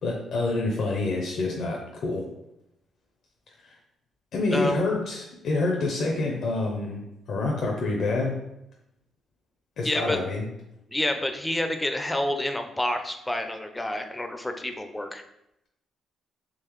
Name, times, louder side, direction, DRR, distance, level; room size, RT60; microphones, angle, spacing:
voice 1, 0.0-2.2 3.6-3.8 4.3-7.0 7.3-8.4 9.8-10.4, left 2 dB, 65° left, -1 dB, 0.6 m, -27 dB
voice 2, 9.8-10.2 10.9-15.2, left 1 dB, 10° left, 6 dB, 0.4 m, -28 dB
3.8 x 3.0 x 3.0 m, 0.84 s
cardioid pair, 90°, 0 cm